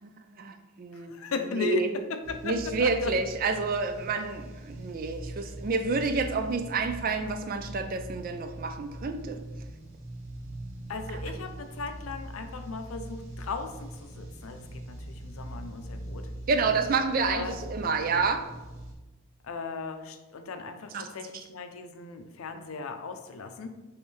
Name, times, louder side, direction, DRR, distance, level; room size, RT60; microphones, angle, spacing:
voice 1, 0.0-1.2 1.5-1.9 2.4-9.4 16.5-18.4 20.9-21.1, right 4 dB, 45° right, 7 dB, 0.4 m, -29 dB
voice 2, 0.9-3.2 10.9-16.3 17.3-17.6 19.4-23.7, left 4 dB, 85° left, 7 dB, 0.5 m, -36 dB
sound 1, 2.2-18.9, right 1 dB, 65° right, 0.9 m, -42 dB
5.3 x 3.1 x 3.1 m, 1.1 s
head